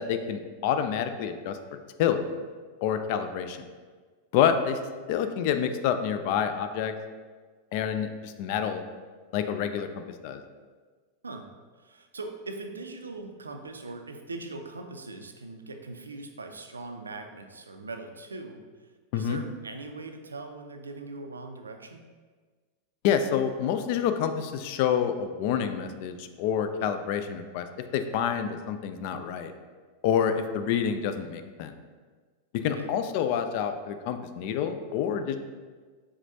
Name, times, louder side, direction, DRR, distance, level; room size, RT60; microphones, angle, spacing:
voice 1, 0.0-1.6 2.0-2.2 2.8-3.6 4.3-4.8 5.1-6.9 7.7-8.8 9.3-9.9 10.2-10.4 19.1-19.4 23.0-27.7 27.9-29.5 30.0-31.7 32.5-35.4, left 8 dB, 45° left, 8 dB, 0.3 m, -27 dB
voice 2, 11.7-22.1 32.7-32.9, right 3 dB, 75° right, 5 dB, 0.4 m, -41 dB
4.9 x 3.3 x 2.7 m, 1.5 s
figure-of-eight pair, 90°, 0 cm